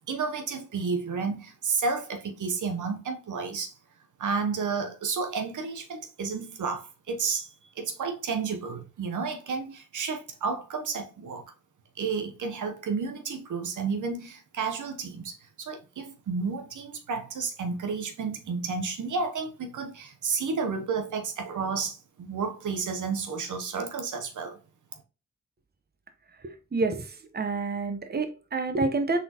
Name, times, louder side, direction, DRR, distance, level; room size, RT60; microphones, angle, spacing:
voice 1, 0.1-3.7 4.2-7.5 7.8-11.4 12.0-24.6, right 5 dB, 75° right, 0.8 m, -31 dB
voice 2, 26.4-29.2, right 3 dB, 30° right, 0.8 m, -28 dB
4.1 x 3.7 x 2.8 m
cardioid pair, 50°, 31 cm